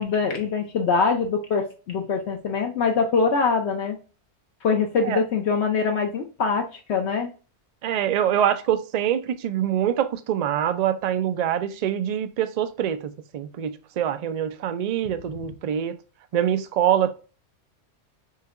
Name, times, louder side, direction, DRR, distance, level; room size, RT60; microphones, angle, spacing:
voice 1, 0.0-4.0 4.6-7.3, left 5 dB, 70° left, 0.9 m, -23 dB
voice 2, 7.8-16.0 16.3-17.1, right 10 dB, 55° right, 0.4 m, -24 dB
5.6 x 2.9 x 2.5 m
omnidirectional pair, 1.2 m